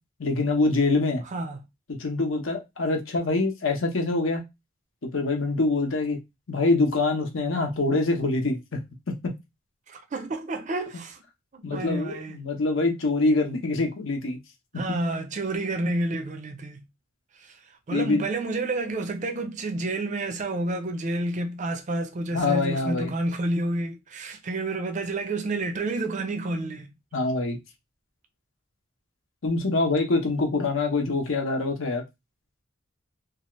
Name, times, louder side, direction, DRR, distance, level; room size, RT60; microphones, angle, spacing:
voice 1, 0.2-1.2 2.0-4.4 5.1-6.2 6.5-8.6 11.6-14.4 14.9-15.0 17.9-18.2 22.3-23.1 27.1-27.6 29.4-32.0, left 3 dB, 70° left, 0.8 m, -25 dB
voice 2, 1.2-1.6 9.9-11.2 11.5-12.3 14.7-16.8 17.3-26.9, right 2 dB, 35° right, 0.4 m, -30 dB
2.7 x 2.4 x 3.0 m
head